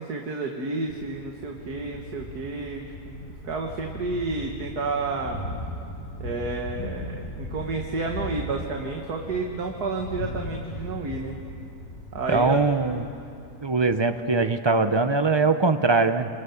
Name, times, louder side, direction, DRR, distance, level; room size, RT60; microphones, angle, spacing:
voice 1, 0.0-5.4 6.2-11.4 12.1-12.6, right 3 dB, 65° right, 1 dB, 2.1 m, -31 dB
Thunder, 0.9-14.2, left 1 dB, 80° left, 7.2 m, -38 dB
voice 2, 12.3-13.1 13.6-16.3, right 3 dB, 30° right, 9 dB, 0.5 m, -21 dB
28.0 x 26.0 x 7.2 m, 2.6 s
omnidirectional pair, 1.8 m